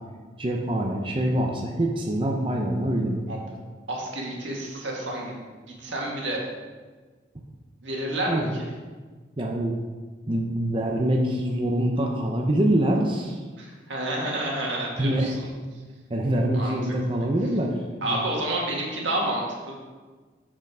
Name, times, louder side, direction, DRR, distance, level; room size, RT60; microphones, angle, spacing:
voice 1, 0.4-3.2 8.3-8.6 9.4-9.7 10.3-13.4 15.0-15.4 16.1-18.2, right 1 dB, 30° right, 0 dB, 0.7 m, -25 dB
voice 2, 3.9-5.4 5.8-6.4 7.8-8.7 13.6-15.5 16.5-16.8 18.0-19.8, right 1 dB, 85° right, -2 dB, 2.0 m, -29 dB
6.7 x 6.2 x 4.9 m, 1.4 s
head